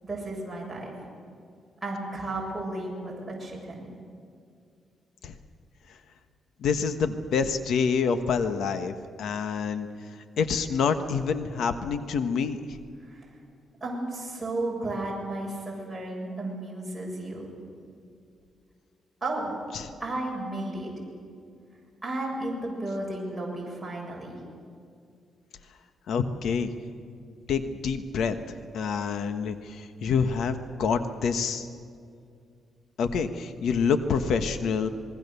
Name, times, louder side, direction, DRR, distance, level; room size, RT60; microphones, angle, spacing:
voice 1, 0.0-0.9 1.8-3.9 13.0-13.3 13.8-17.5 19.2-19.5 20.0-20.9 22.0-24.4, right 2 dB, 10° right, -4 dB, 7.4 m, -33 dB
voice 2, 6.6-9.9 10.4-12.6 19.7-19.9 26.1-26.7 27.5-28.3 28.7-31.7 33.0-34.9, left 6 dB, 75° left, 8 dB, 1.4 m, -27 dB
27.0 x 21.0 x 6.9 m, 2.3 s
cardioid pair, 125°, 0 cm